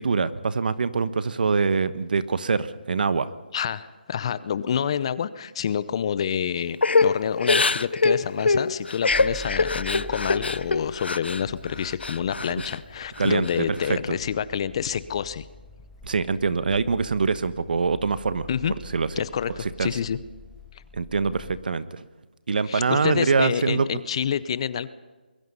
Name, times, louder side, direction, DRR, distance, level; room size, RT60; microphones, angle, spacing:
voice 1, 0.0-3.3 13.2-14.0 16.0-18.5 18.9-19.1 19.8-19.9 20.9-22.0 22.5-23.9, right 4 dB, 55° right, 14 dB, 1.2 m, -24 dB
voice 2, 3.5-6.8 7.0-15.5 18.5-18.7 19.2-20.2 22.7-24.9, left 8 dB, 30° left, 16 dB, 0.7 m, -28 dB
Crying sobbing / Breathing, 6.8-11.4 11.8-12.8 13.2-13.9, left 3 dB, 85° left, 0.7 m, -24 dB
sound 1, 9.1-21.6, left 1 dB, ahead, 0.9 m, -46 dB
24.0 x 22.0 x 5.5 m, 1.2 s
figure-of-eight pair, 165°, 6 cm